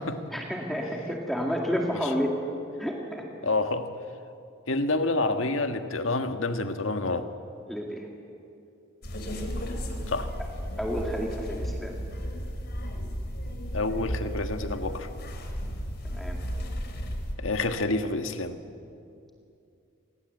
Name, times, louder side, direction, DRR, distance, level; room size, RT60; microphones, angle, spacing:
voice 1, 0.3-2.4 2.8-3.2 7.7-8.1 10.8-12.0 16.0-16.4, equal, ahead, 0 dB, 2.0 m, -30 dB
voice 2, 3.4-3.9 4.7-7.3 10.1-10.3 13.7-15.1 17.4-18.6, left 2 dB, 75° left, 7 dB, 1.5 m, -28 dB
sound 1, 9.0-17.3, equal, 50° left, 3.3 m, -34 dB
27.0 x 20.0 x 7.9 m, 2.6 s
head